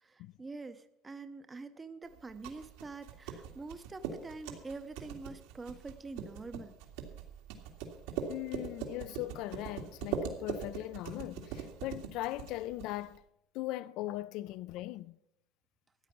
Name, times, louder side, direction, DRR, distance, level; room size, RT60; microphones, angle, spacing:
voice 1, 0.0-6.7, right 3 dB, 15° right, 0.6 m, -45 dB
sound 1, 2.1-13.2, right 7 dB, 80° right, 2.0 m, -42 dB
voice 2, 8.3-13.2 13.5-15.2, left 16 dB, 55° left, 0.3 m, -39 dB
13.5 x 9.6 x 5.8 m
cardioid pair, 170°, 0 cm